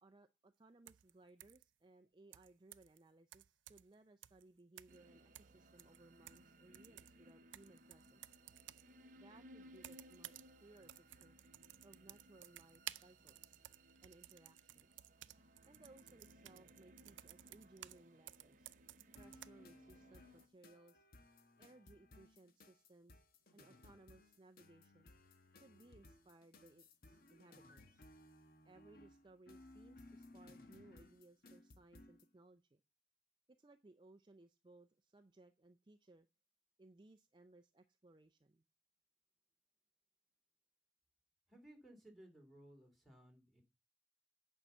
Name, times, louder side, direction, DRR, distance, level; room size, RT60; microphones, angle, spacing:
voice 1, 0.0-8.3 9.1-11.4 11.8-13.6 14.0-15.0 15.7-18.7 19.1-21.0 21.6-23.2 23.5-25.1 25.6-28.0 28.6-32.8 33.5-36.3 36.8-38.6, right 2 dB, 25° right, 7 dB, 0.5 m, -64 dB
sound 1, 0.9-1.1 1.4-1.6 2.3-3.0 3.3-3.9 4.2-4.4 4.8-5.0 5.3-6.5 6.7-8.9 9.8-10.5 10.8-18.0 18.3-19.5, right 14 dB, 85° right, 0.5 m, -55 dB
sound 2, 4.9-20.5, right 1 dB, 45° right, 0.9 m, -64 dB
sound 3, 19.2-32.3, left 2 dB, 50° left, 1.2 m, -61 dB
voice 2, 41.5-43.6, right 1 dB, ahead, 0 dB, 2.6 m, -60 dB
8.8 x 5.5 x 7.9 m, 0.28 s
head